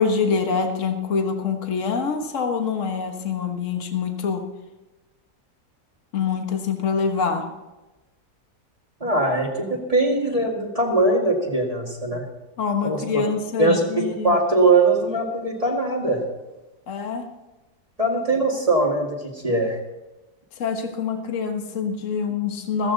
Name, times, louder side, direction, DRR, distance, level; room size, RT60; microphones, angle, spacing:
voice 1, 0.0-4.4 6.1-7.5 12.6-14.4 15.1-15.2 16.9-17.3 20.6-22.9, left 5 dB, 50° left, 5 dB, 1.6 m, -25 dB
voice 2, 9.0-12.2 12.8-13.2 13.6-13.8 14.2-16.2 18.0-19.8, right 2 dB, 20° right, -2 dB, 2.2 m, -21 dB
15.0 x 14.5 x 4.0 m, 1.1 s
omnidirectional pair, 1.7 m